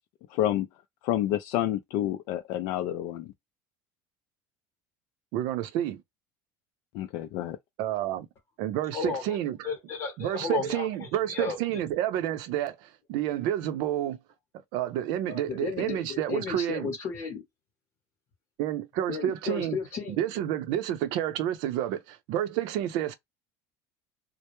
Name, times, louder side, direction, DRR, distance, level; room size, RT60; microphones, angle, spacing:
voice 1, 0.3-0.7 1.0-3.3 6.9-7.6, left 12 dB, 65° left, 0.3 m, -29 dB
voice 2, 5.3-6.0 7.8-8.3 8.6-9.7 10.2-14.2 14.7-16.9 18.6-19.8 20.1-23.1, right 11 dB, 65° right, 0.5 m, -29 dB
voice 3, 9.6-10.9 11.3-11.6 15.3-17.4 19.1-20.2, left 5 dB, 40° left, 0.8 m, -33 dB
2.2 x 2.0 x 2.9 m
cardioid pair, 145°, 8 cm